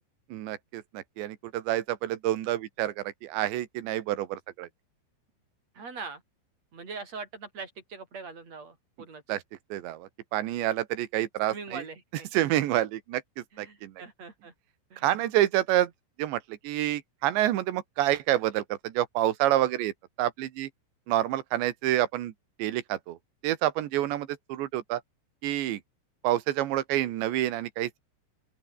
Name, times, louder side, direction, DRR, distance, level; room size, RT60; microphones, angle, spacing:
voice 1, 0.3-4.7 9.3-9.4 9.7-11.9 12.3-13.2 13.6-13.9 15.0-15.9 16.2-19.9 20.2-20.7 21.1-22.3 22.6-23.2 23.4-25.0 25.4-25.8 26.2-28.0, right 14 dB, 70° right, 3.5 m, -28 dB
voice 2, 5.7-6.2 6.7-9.2 11.5-12.3 13.5-14.5 14.9-15.1, right 4 dB, 35° right, 5.8 m, -42 dB
open air
omnidirectional pair, 5.8 m